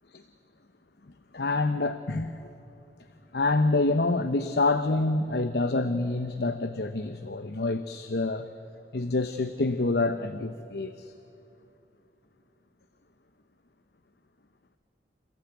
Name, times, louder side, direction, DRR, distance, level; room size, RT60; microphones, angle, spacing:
voice 1, 1.3-2.5 3.3-8.5 8.9-11.1, left 2 dB, 65° left, 9 dB, 0.9 m, -27 dB
28.5 x 15.0 x 9.1 m, 2.9 s
head